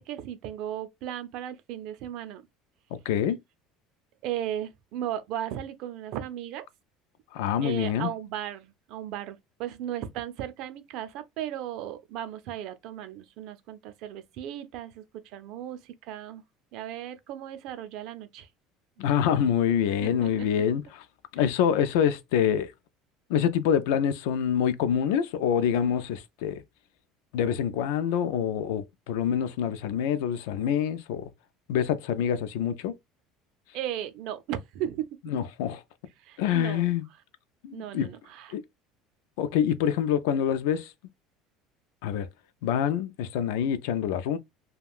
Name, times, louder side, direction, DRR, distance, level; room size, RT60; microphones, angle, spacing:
voice 1, 0.0-2.4 4.2-6.6 7.6-16.4 16.7-18.5 20.0-20.5 33.7-35.3 36.2-36.9 37.7-38.6, right 11 dB, 60° right, 0.5 m, -36 dB
voice 2, 3.1-3.4 7.3-8.1 19.0-21.0 21.3-22.7 23.3-26.6 27.3-31.3 31.7-32.9 35.3-35.8 36.4-37.1 37.6-38.1 38.5-38.6 39.4-40.9 42.0-42.3 42.6-44.4, left 9 dB, 85° left, 0.4 m, -26 dB
2.4 x 2.2 x 3.4 m
cardioid pair, 150°, 0 cm